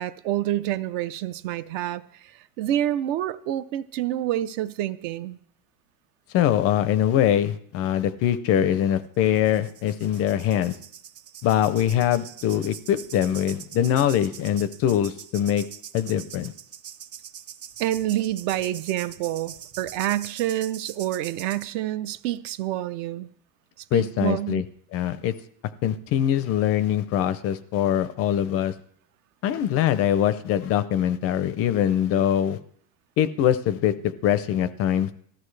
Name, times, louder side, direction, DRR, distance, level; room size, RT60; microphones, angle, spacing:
voice 1, 0.0-2.3 2.6-5.4 17.8-23.3 23.9-24.6, right 13 dB, 50° right, 0.6 m, -28 dB
voice 2, 6.3-10.8 11.4-15.6 15.9-16.5 23.9-24.6 24.9-25.3 25.8-28.7 29.4-32.6 33.2-35.1, left 10 dB, 30° left, 0.5 m, -23 dB
sound 1, 9.3-21.7, right 9 dB, 30° right, 1.0 m, -43 dB
19.0 x 14.0 x 3.3 m
cardioid pair, 165°, 46 cm